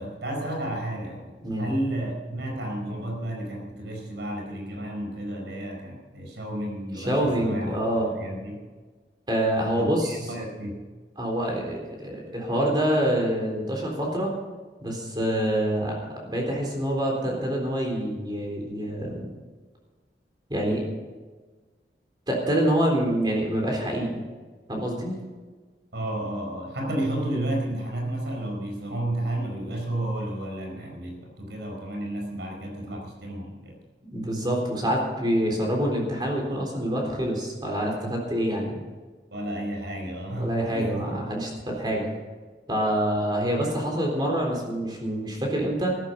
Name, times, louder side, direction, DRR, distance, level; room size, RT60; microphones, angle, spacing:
voice 1, 0.0-8.6 9.8-10.8 25.9-33.7 39.3-41.0, right 1 dB, 75° right, 1 dB, 4.8 m, -32 dB
voice 2, 7.0-8.1 9.3-10.3 11.2-14.3 14.8-19.3 20.5-20.8 22.3-24.1 24.7-25.2 34.1-38.8 40.4-42.1 42.7-46.0, right 1 dB, 25° right, 0 dB, 3.8 m, -26 dB
14.5 x 14.0 x 5.3 m, 1.3 s
head